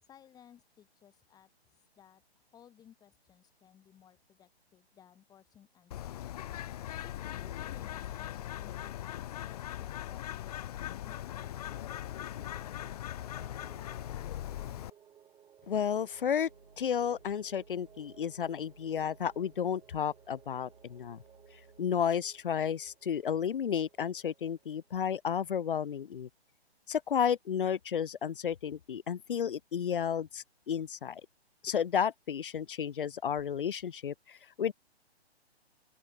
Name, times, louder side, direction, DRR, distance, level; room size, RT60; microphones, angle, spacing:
voice 1, 0.0-6.3 7.0-11.4, left 9 dB, 10° left, 2.5 m, -59 dB
Bird, 5.9-14.9, left 12 dB, 35° left, 1.5 m, -40 dB
sound 1, 10.5-24.9, right 9 dB, 10° right, 7.4 m, -60 dB
voice 2, 15.7-16.5 16.8-21.2 21.8-26.3 26.9-31.2 31.6-34.7, left 8 dB, 55° left, 1.3 m, -32 dB
sound 2, 16.1-22.1, right 3 dB, 80° right, 4.1 m, -61 dB
open air
figure-of-eight pair, 130°, 33 cm